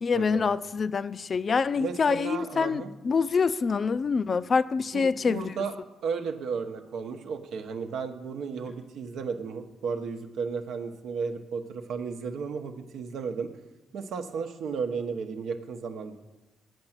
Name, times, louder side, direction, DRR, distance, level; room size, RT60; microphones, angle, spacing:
voice 1, 0.0-5.5, left 5 dB, 40° left, 0.3 m, -26 dB
voice 2, 1.8-2.9 4.9-5.8 6.0-13.5 13.9-16.2, right 5 dB, 75° right, 0.8 m, -34 dB
7.8 x 5.3 x 7.3 m
cardioid pair, 90°, 0 cm